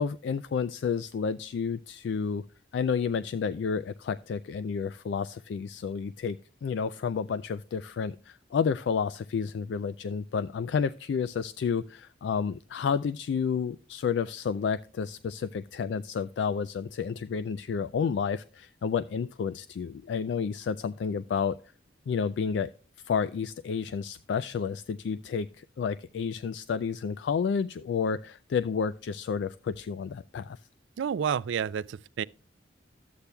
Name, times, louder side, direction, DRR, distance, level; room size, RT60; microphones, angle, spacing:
voice 1, 0.0-2.4 2.7-21.6 22.1-22.7 23.0-30.6, left 6 dB, 65° left, 0.3 m, -30 dB
voice 2, 31.0-32.2, right 8 dB, 80° right, 0.3 m, -30 dB
13.0 x 8.3 x 2.2 m
head